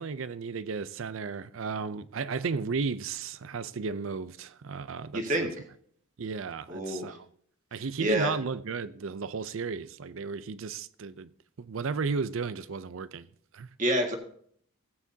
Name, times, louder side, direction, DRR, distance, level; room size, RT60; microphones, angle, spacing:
voice 1, 0.0-5.5 6.2-7.3 7.7-11.3 11.6-13.3 13.5-13.7, right 5 dB, 70° right, 0.5 m, -34 dB
voice 2, 5.1-5.5 6.7-7.2 8.0-8.3 13.8-14.2, right 1 dB, 35° right, 1.7 m, -27 dB
17.5 x 8.6 x 2.8 m
head